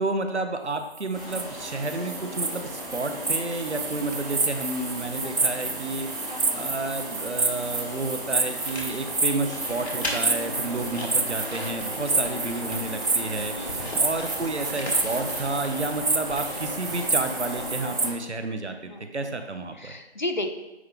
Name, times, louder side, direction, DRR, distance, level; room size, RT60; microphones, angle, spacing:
voice 1, 0.0-19.9, right 2 dB, 85° right, 7 dB, 0.9 m, -31 dB
sound 1, 1.0-18.1, right 3 dB, 55° right, 0.6 m, -29 dB
sound 2, 1.1-18.1, equal, ahead, 0.6 m, -38 dB
voice 2, 6.3-6.6 10.6-10.8 13.5-14.1 18.9-19.1 19.8-20.5, left 1 dB, 45° left, 5 dB, 0.7 m, -34 dB
sound 3, 8.6-17.0, left 1 dB, 70° left, 1.8 m, -39 dB
9.4 x 3.9 x 3.6 m, 1.0 s
figure-of-eight pair, 170°, 33 cm